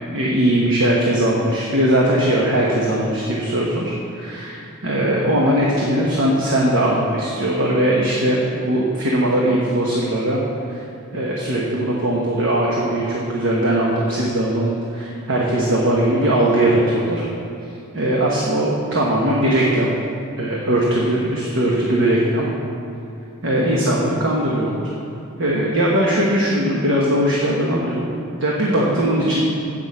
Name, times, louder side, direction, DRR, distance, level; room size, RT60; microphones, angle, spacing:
voice 1, 0.1-3.9 4.2-4.3 4.8-10.4 10.7-10.8 11.1-17.2 17.9-19.9 20.4-22.5 23.4-24.7 25.4-29.4, right 1 dB, 60° right, -4 dB, 1.1 m, -19 dB
8.2 x 6.2 x 7.3 m, 2.7 s
head